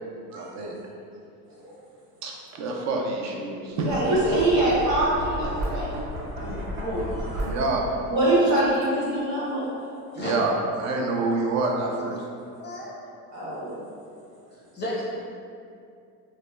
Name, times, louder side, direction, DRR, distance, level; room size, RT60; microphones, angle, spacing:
voice 1, 0.3-0.7 2.2-4.2 7.4-7.9 8.5-8.6 10.2-12.2, right 3 dB, 40° right, 0 dB, 0.4 m, -27 dB
Knock, 3.7-7.9, equal, 85° right, 0.9 m, -33 dB
voice 2, 3.8-5.9 8.1-9.6 13.3-13.7, right 1 dB, 65° right, -7 dB, 1.1 m, -23 dB
voice 3, 6.4-7.1 10.1-10.3 12.6-13.0 14.7-15.0, left 1 dB, 25° left, -4 dB, 0.7 m, -32 dB
2.7 x 2.1 x 2.2 m, 2.4 s
hypercardioid pair, 80°, 44 cm